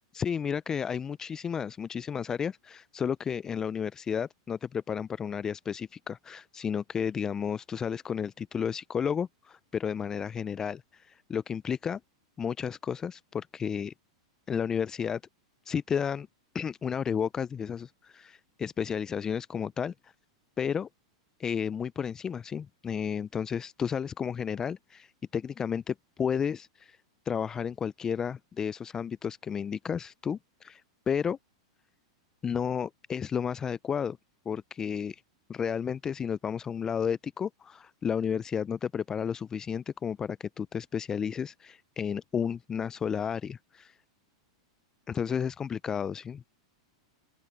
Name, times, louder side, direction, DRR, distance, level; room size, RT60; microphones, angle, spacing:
voice 1, 0.1-12.0 12.4-13.9 14.5-15.2 15.7-16.3 16.5-20.1 20.6-20.9 21.4-27.0 27.3-31.4 32.4-34.2 34.5-35.2 35.5-44.0 45.1-46.4, left 7 dB, 20° left, 0.3 m, -32 dB
open air
hypercardioid pair, 115°, 3 cm